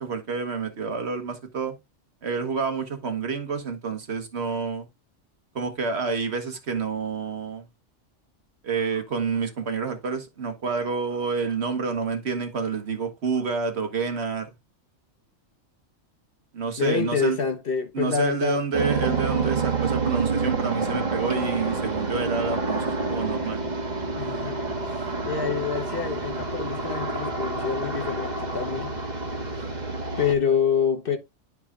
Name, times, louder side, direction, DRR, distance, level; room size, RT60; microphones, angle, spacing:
voice 1, 0.0-1.8 2.2-4.9 5.5-7.6 8.6-14.5 16.5-17.4 17.9-23.6, right 5 dB, 55° right, 1.4 m, -28 dB
voice 2, 16.8-18.6 24.2-28.9 30.2-31.2, left 6 dB, 50° left, 1.0 m, -27 dB
sound 1, 18.7-30.3, right 3 dB, 35° right, 1.5 m, -28 dB
11.0 x 4.7 x 2.4 m
omnidirectional pair, 1.3 m